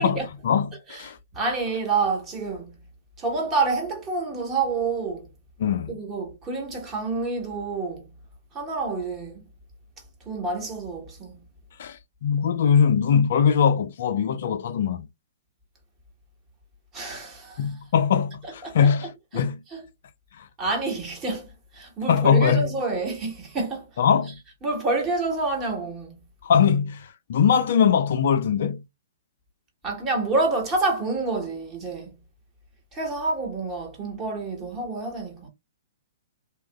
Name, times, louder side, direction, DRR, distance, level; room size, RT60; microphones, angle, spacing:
voice 1, 0.0-1.2 5.6-5.9 11.8-15.1 17.6-19.6 20.4-20.5 22.1-22.7 24.0-24.4 26.4-28.8, left 7 dB, 60° left, 0.4 m, -21 dB
voice 2, 1.3-2.8 3.2-5.3 5.9-8.1 8.5-9.5 10.2-11.4 16.9-17.6 18.6-18.9 19.7-19.8 20.6-23.9 24.6-26.2 29.8-32.2 32.9-35.5, right 3 dB, 25° right, 1.2 m, -28 dB
2.9 x 2.3 x 2.2 m
hypercardioid pair, 120°, 0 cm